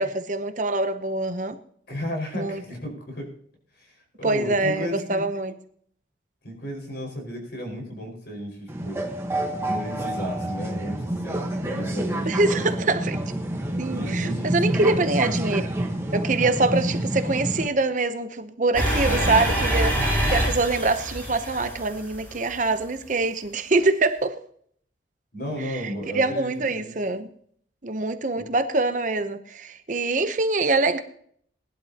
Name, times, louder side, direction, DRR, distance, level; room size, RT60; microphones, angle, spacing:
voice 1, 0.0-1.6 2.3-2.6 4.2-5.5 12.3-13.2 13.8-15.7 16.1-24.3 25.6-25.9 26.1-27.3 27.8-31.0, right 3 dB, 40° right, 0.8 m, -24 dB
voice 2, 1.9-3.3 3.8-5.2 6.4-9.0 9.7-12.9 13.9-14.6 14.9-15.1 19.0-19.5 25.3-27.0 28.3-28.5, equal, 55° left, 5.1 m, -34 dB
sound 1, 8.7-17.7, right 1 dB, 15° right, 1.2 m, -28 dB
sound 2, 18.7-22.6, right 1 dB, 10° left, 4.0 m, -25 dB
19.5 x 11.5 x 2.9 m
head